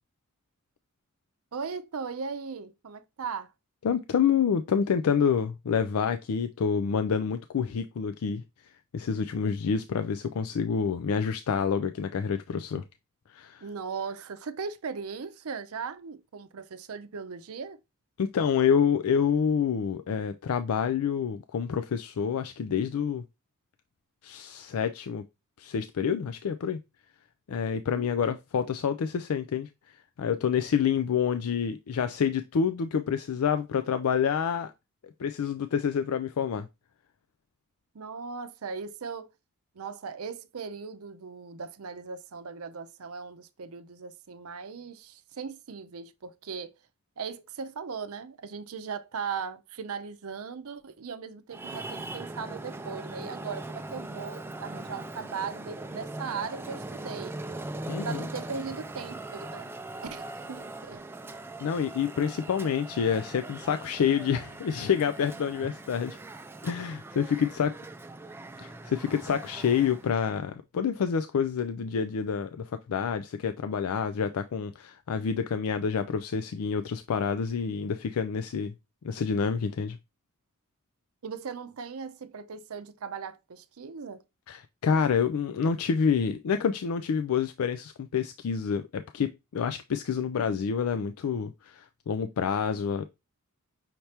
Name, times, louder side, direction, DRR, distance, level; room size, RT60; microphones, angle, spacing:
voice 1, 1.5-3.5 13.6-17.8 27.9-28.1 37.9-39.3 39.7-46.7 47.2-57.4 58.0-59.7 60.0-61.0 81.2-84.2, right 5 dB, 75° right, 0.6 m, -38 dB
voice 2, 3.8-8.4 8.9-12.8 13.3-13.6 18.2-23.2 24.2-25.2 25.6-26.8 27.5-34.7 35.2-36.7 57.9-58.3 61.6-66.2 66.6-67.7 68.6-78.7 79.0-80.0 84.5-93.0, left 7 dB, 80° left, 0.4 m, -28 dB
Traffic noise roadway noise, 51.5-70.2, right 2 dB, 10° right, 0.3 m, -40 dB
5.8 x 2.9 x 3.2 m
head